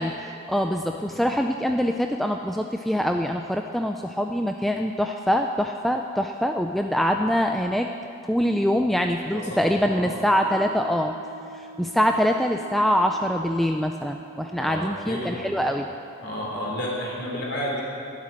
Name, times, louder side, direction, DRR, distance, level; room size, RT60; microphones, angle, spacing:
voice 1, 0.0-7.9 8.3-11.2 11.8-15.9, equal, ahead, 3 dB, 0.3 m, -24 dB
voice 2, 9.3-10.1 14.6-15.6 16.2-17.8, equal, 50° left, -3 dB, 3.3 m, -32 dB
Wind instrument woodwind instrument, 9.8-14.6, right 3 dB, 70° right, 1.7 m, -45 dB
12.5 x 7.4 x 9.8 m, 2.5 s
head